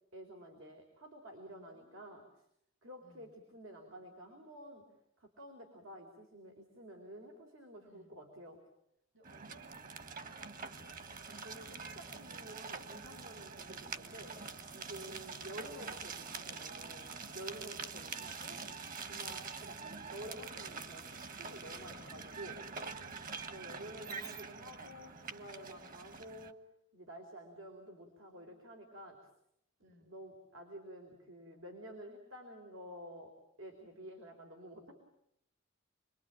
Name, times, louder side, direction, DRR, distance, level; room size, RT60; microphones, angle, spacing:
voice 1, 0.1-2.2 2.8-4.9 5.2-8.6 11.3-14.4 14.7-18.6 19.0-22.6 23.5-26.6 26.9-29.2 29.8-33.3 33.6-34.9, equal, 90° right, 2 dB, 4.2 m, -50 dB
voice 2, 1.4-2.3 3.0-3.4 7.7-8.2 9.1-11.0 12.2-12.4 14.8-15.1 19.2-19.6 23.0-23.5 25.7-26.0 28.0-28.7 29.8-30.1, equal, 65° right, 8 dB, 4.3 m, -64 dB
sound 1, 9.2-26.5, right 5 dB, 45° right, 1.4 m, -45 dB
29.5 x 22.0 x 9.0 m, 0.78 s
head